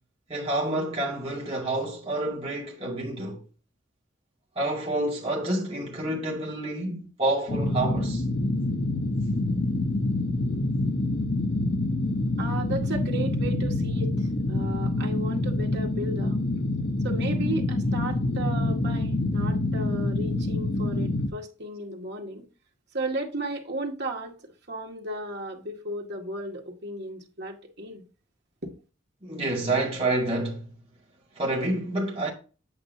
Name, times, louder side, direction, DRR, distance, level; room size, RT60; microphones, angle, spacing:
voice 1, 0.3-3.4 4.6-8.2 29.2-30.7 31.4-32.3, right 2 dB, 30° right, 2.1 m, -28 dB
sound 1, 7.5-21.3, left 2 dB, 55° left, 0.9 m, -26 dB
voice 2, 12.4-16.4 17.0-22.4 22.9-28.0 28.6-28.7, right 1 dB, 55° right, 2.0 m, -35 dB
8.6 x 8.2 x 2.7 m
head